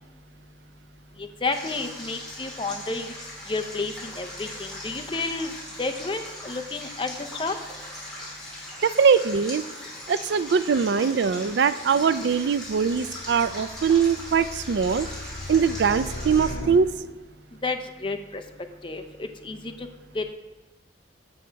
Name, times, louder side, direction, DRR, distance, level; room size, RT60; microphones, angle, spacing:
voice 1, 1.2-3.1 3.5-7.1 7.4-7.6 17.6-18.4 18.8-19.9 20.1-20.3, left 3 dB, 25° left, 6 dB, 0.6 m, -31 dB
Stream, 1.5-16.5, left 1 dB, ahead, 2.8 m, -39 dB
voice 2, 8.8-9.6 10.1-15.1 15.5-16.9, right 6 dB, 65° right, 14 dB, 0.3 m, -22 dB
sound 1, 12.1-17.3, left 1 dB, 85° left, 1.2 m, -38 dB
8.4 x 6.4 x 4.6 m, 1.1 s
head